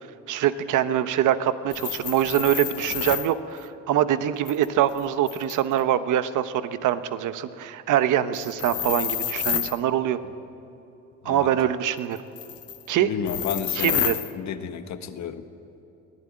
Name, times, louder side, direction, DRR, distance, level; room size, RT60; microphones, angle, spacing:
voice 1, 0.3-10.2 11.2-12.2 12.9-13.1 13.7-14.2, right 11 dB, 85° right, 11 dB, 1.1 m, -24 dB
sound 1, 1.7-3.3 4.5-5.8 8.3-9.8 12.2-12.8 13.3-14.3, left 10 dB, 50° left, 0.8 m, -29 dB
voice 2, 13.0-15.4, left 7 dB, 65° left, 8 dB, 1.5 m, -32 dB
23.0 x 17.0 x 8.8 m, 3.0 s
cardioid pair, 90°, 30 cm